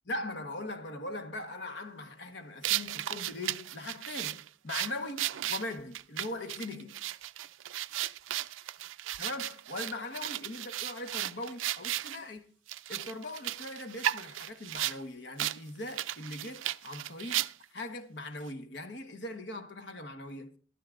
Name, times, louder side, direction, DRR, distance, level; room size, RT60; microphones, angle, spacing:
voice 1, 0.1-7.0 9.2-12.5 12.9-17.4 17.7-20.5, left 2 dB, 60° left, 1.2 m, -40 dB
sound 1, 2.6-12.2 12.7-15.0 15.4-15.6 15.9-17.8, right 13 dB, 90° right, 0.4 m, -35 dB
13.5 x 12.5 x 2.5 m
head